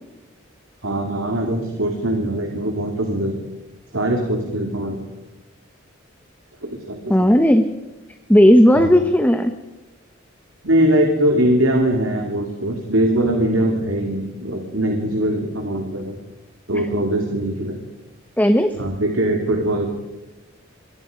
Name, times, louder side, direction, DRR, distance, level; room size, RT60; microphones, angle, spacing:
voice 1, 0.8-3.3 3.9-5.0 6.6-7.1 8.8-9.0 10.6-16.2 16.7-17.8 18.8-19.9, right 1 dB, 80° right, 2 dB, 3.0 m, -21 dB
voice 2, 7.1-7.7 8.3-9.5 16.7-16.8 18.4-18.8, equal, 10° left, 7 dB, 1.0 m, -14 dB
27.0 x 23.0 x 5.3 m, 1.1 s
head